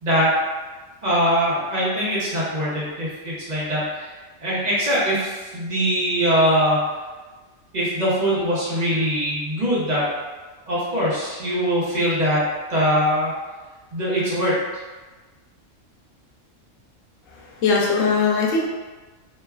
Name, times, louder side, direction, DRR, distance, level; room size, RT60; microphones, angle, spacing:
voice 1, 0.0-0.4 1.0-4.1 4.4-6.9 7.7-10.1 10.7-13.3 13.9-14.6, equal, 40° right, -8 dB, 0.8 m, -22 dB
voice 2, 17.3-18.6, left 4 dB, 85° left, -2 dB, 1.0 m, -20 dB
3.1 x 2.2 x 2.3 m, 1.3 s
omnidirectional pair, 1.3 m